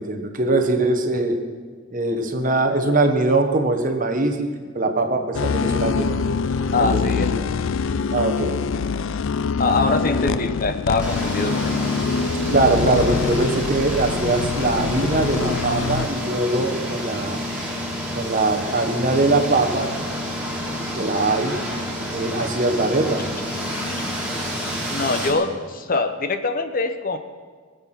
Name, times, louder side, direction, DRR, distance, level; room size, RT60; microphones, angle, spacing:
voice 1, 0.0-1.4 1.9-6.2 6.7-7.4 8.1-8.6 12.5-17.4 18.1-20.0 20.9-21.6 22.1-23.3, right 2 dB, 40° right, 6 dB, 1.3 m, -22 dB
sound 1, 5.3-16.1, left 5 dB, 60° left, 0.4 m, -24 dB
voice 2, 6.7-7.4 9.6-11.9 23.2-23.5 23.7-24.1 24.9-27.2, left 3 dB, 40° left, 9 dB, 0.8 m, -24 dB
sound 2, 11.0-25.3, equal, 5° right, 2.8 m, -29 dB
22.5 x 8.3 x 5.9 m, 1.5 s
head